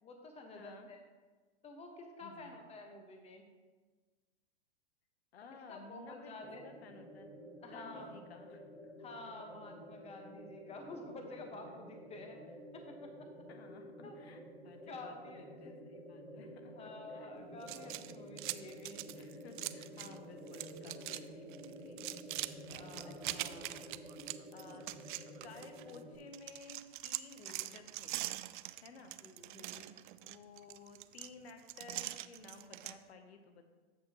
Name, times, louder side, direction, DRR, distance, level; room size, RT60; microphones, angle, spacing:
voice 1, 0.0-1.0 1.6-3.4 5.7-6.7 7.6-8.1 9.0-13.3 14.0-14.2 14.9-15.8 16.8-19.1 22.7-23.4 27.4-27.7 29.2-29.9, left 2 dB, 20° left, 4 dB, 1.3 m, -50 dB
voice 2, 0.5-0.9 2.2-2.6 5.3-6.4 6.6-7.3 7.6-8.7 13.5-17.3 19.1-22.0 23.0-23.9 24.5-24.9 25.4-28.2 28.8-29.2 30.2-33.7, left 4 dB, 80° left, 6 dB, 1.0 m, -55 dB
sound 1, 6.4-26.2, equal, ahead, 1.6 m, -51 dB
sound 2, 17.6-20.2 20.5-21.2 21.5-26.0 26.3-33.0, right 16 dB, 55° right, 0.4 m, -43 dB
14.5 x 5.5 x 3.0 m, 1.3 s
hypercardioid pair, 115°, 32 cm